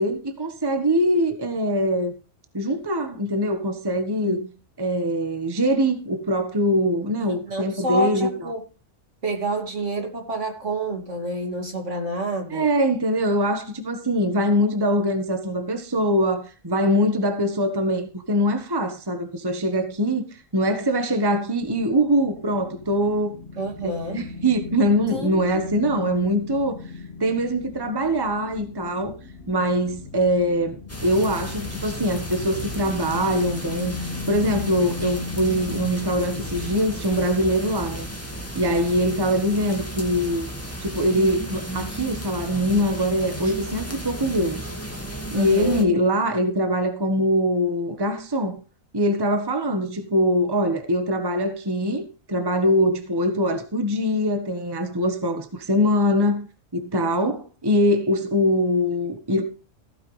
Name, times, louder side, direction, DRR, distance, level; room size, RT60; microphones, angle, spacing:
voice 1, 0.0-2.1 2.5-4.4 4.8-8.3 12.5-23.3 23.8-26.8 27.2-29.1 29.5-38.1 38.5-40.5 40.8-44.7 45.3-48.6 48.9-56.5 56.7-59.4, equal, 20° right, 1.4 m, -23 dB
voice 2, 7.3-8.6 9.2-12.7 23.6-24.2 25.1-25.4 43.4-43.5 45.3-45.9, right 1 dB, 60° right, 3.0 m, -29 dB
sound 1, 21.6-36.8, left 5 dB, 45° left, 1.8 m, -37 dB
sound 2, 30.9-45.8, right 1 dB, 10° left, 2.2 m, -34 dB
15.5 x 9.5 x 3.3 m
omnidirectional pair, 1.4 m